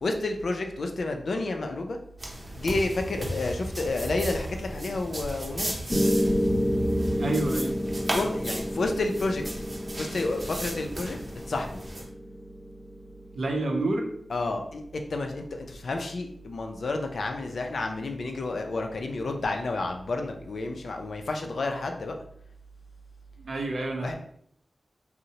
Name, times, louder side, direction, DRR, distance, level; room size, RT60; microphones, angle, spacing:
voice 1, 0.0-2.0 2.5-5.8 8.1-9.6 10.0-11.2 11.5-11.8 14.3-22.2 24.0-24.1, left 2 dB, 75° left, 4 dB, 0.3 m, -30 dB
sound 1, 2.2-12.0, right 1 dB, 45° right, 0.7 m, -35 dB
Piano, 5.9-14.0, equal, 35° left, 0.6 m, -30 dB
voice 2, 7.1-7.8 13.3-14.1 23.4-24.1, right 2 dB, 80° right, 1 dB, 0.5 m, -28 dB
2.6 x 2.0 x 2.8 m, 0.68 s
cardioid pair, 40°, 0 cm